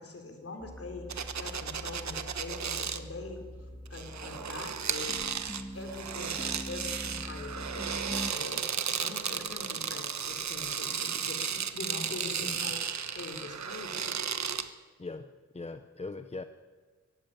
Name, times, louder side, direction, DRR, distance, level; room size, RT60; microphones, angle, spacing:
voice 1, 0.0-3.5 3.9-5.2 5.7-14.2, left 3 dB, 50° left, 4 dB, 4.2 m, -43 dB
sound 1, 0.6-8.3, equal, 5° left, 1.7 m, -43 dB
sound 2, 1.1-3.0 3.9-14.7, right 7 dB, 65° right, 1.2 m, -34 dB
voice 2, 12.4-12.7 15.0-16.5, left 3 dB, 20° left, 9 dB, 0.7 m, -41 dB
23.5 x 16.0 x 9.5 m, 1.5 s
wide cardioid pair, 165°, 30 cm